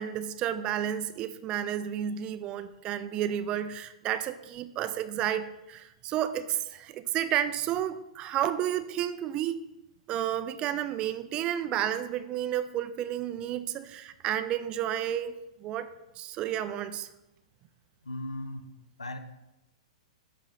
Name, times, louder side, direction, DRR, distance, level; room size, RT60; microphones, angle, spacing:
voice 1, 0.0-9.6 10.1-15.3 15.6-17.1, right 11 dB, 25° right, 12 dB, 0.3 m, -31 dB
voice 2, 18.0-18.7 19.0-19.2, left 1 dB, 75° left, 10 dB, 0.6 m, -37 dB
11.5 x 3.8 x 3.5 m, 0.95 s
figure-of-eight pair, 105°, 3 cm